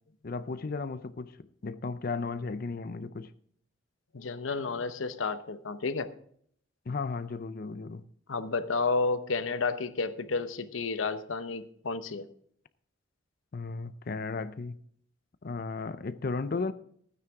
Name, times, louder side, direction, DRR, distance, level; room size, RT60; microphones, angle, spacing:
voice 1, 0.2-3.3 6.9-8.0 13.5-14.8 15.4-16.7, left 4 dB, 45° left, 0.5 m, -35 dB
voice 2, 4.1-6.1 8.3-12.3, left 4 dB, 80° left, 0.9 m, -31 dB
15.5 x 9.6 x 3.6 m
head